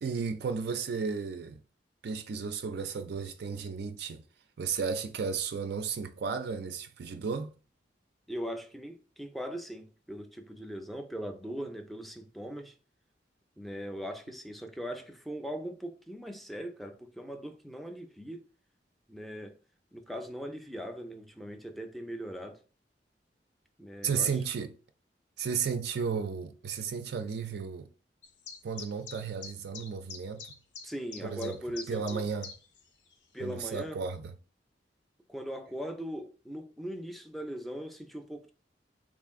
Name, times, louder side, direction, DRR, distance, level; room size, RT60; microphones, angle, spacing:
voice 1, 0.0-1.6 2.0-4.2 4.6-7.5 24.0-24.8 25.4-27.9 28.6-30.4 31.2-31.6 31.9-32.5 33.4-34.3, right 6 dB, 65° right, 0.4 m, -34 dB
voice 2, 8.3-12.7 13.6-18.4 19.1-19.6 19.9-22.6 23.8-24.4 30.8-32.2 33.3-34.0 35.3-38.5, equal, ahead, 0.5 m, -40 dB
sound 1, 28.2-32.8 33.1-33.2 33.8-33.9, left 5 dB, 90° left, 0.7 m, -45 dB
3.7 x 2.5 x 3.5 m
head